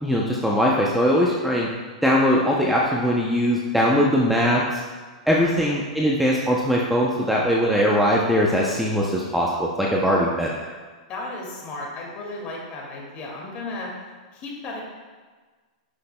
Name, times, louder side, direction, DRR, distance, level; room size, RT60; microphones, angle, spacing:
voice 1, 0.0-1.7 2.0-4.8 5.3-10.5, equal, ahead, -4 dB, 0.6 m, -21 dB
voice 2, 5.4-5.8 11.1-13.9 14.3-14.8, left 2 dB, 35° left, -2 dB, 2.0 m, -34 dB
9.7 x 6.3 x 2.2 m, 1.4 s
hypercardioid pair, 135°, 4 cm